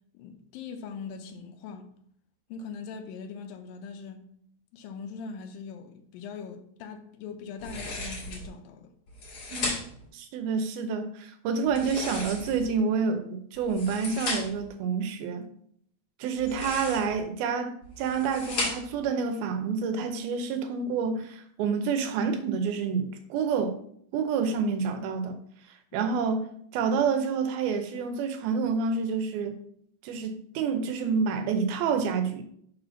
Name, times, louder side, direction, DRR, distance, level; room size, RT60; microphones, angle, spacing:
voice 1, 0.1-1.9 2.5-4.3 4.7-8.9 25.9-26.2, left 5 dB, 80° left, 2.4 m, -41 dB
sound 1, 7.6-8.5 9.1-10.1 11.7-12.7 13.5-14.7 16.3-17.2 17.8-19.0, left 2 dB, 45° left, 2.6 m, -35 dB
voice 2, 10.1-15.5 16.2-23.8 24.1-25.4 25.9-26.5 26.7-29.6 30.0-32.4, right 5 dB, 90° right, 2.7 m, -28 dB
6.1 x 4.2 x 5.7 m
omnidirectional pair, 4.2 m